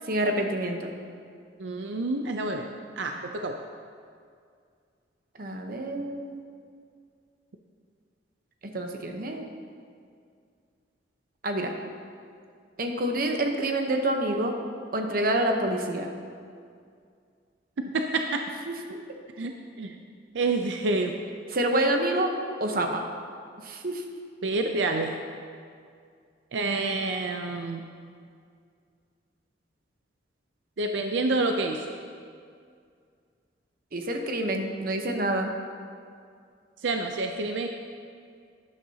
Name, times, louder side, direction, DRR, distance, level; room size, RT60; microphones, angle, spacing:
voice 1, 0.1-0.9 5.4-6.4 8.7-9.4 11.4-11.7 12.8-14.5 14.9-16.1 18.7-19.0 21.5-22.3 22.6-23.1 23.6-24.0 33.9-35.5, right 1 dB, 55° right, 4 dB, 0.9 m, -27 dB
voice 2, 1.6-2.7 3.0-3.6 17.8-18.4 19.4-19.5 19.8-19.9 20.3-21.1 24.4-25.1 26.5-27.8 30.8-31.8 36.8-37.7, right 3 dB, 85° right, 4 dB, 0.5 m, -28 dB
12.5 x 10.5 x 2.8 m, 2.2 s
head